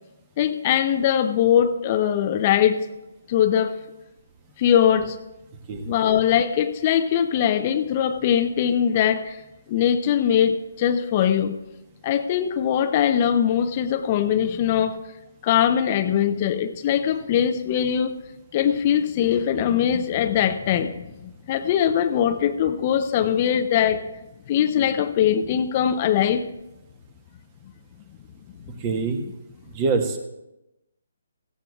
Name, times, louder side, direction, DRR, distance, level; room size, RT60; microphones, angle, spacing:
voice 1, 0.4-2.8 3.3-3.8 4.6-5.2 5.9-9.4 9.7-11.6 12.0-15.0 15.4-18.2 18.5-24.0 24.5-26.4, left 9 dB, 35° left, 9 dB, 0.6 m, -21 dB
voice 2, 28.8-29.2 29.7-30.3, right 4 dB, 30° right, 6 dB, 1.3 m, -25 dB
18.0 x 15.0 x 2.4 m, 0.94 s
figure-of-eight pair, 140°, 0 cm